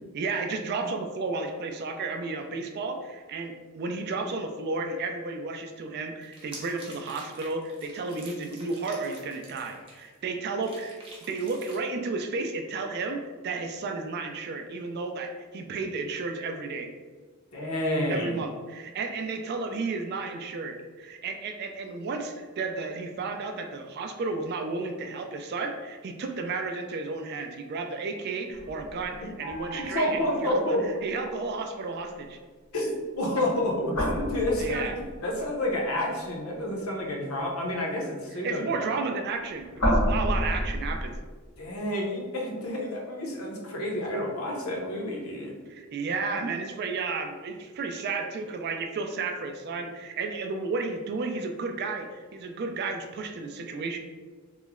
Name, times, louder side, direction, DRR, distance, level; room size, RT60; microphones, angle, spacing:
voice 1, 0.1-11.0 11.3-16.9 18.1-30.8 31.0-32.4 34.6-34.9 38.3-41.1 45.7-54.0, right 3 dB, 45° right, 5 dB, 0.3 m, -32 dB
sound 1, 6.2-10.3 10.6-11.8, right 2 dB, 25° right, 0.7 m, -47 dB
voice 2, 17.5-18.4 29.8-30.8 32.7-38.9 41.6-45.6, left 1 dB, 70° left, 0 dB, 0.6 m, -29 dB
sound 2, 28.5-32.0 33.8-35.4 38.8-41.2, equal, 85° left, 1.1 m, -31 dB
3.1 x 2.0 x 3.5 m, 1.4 s
head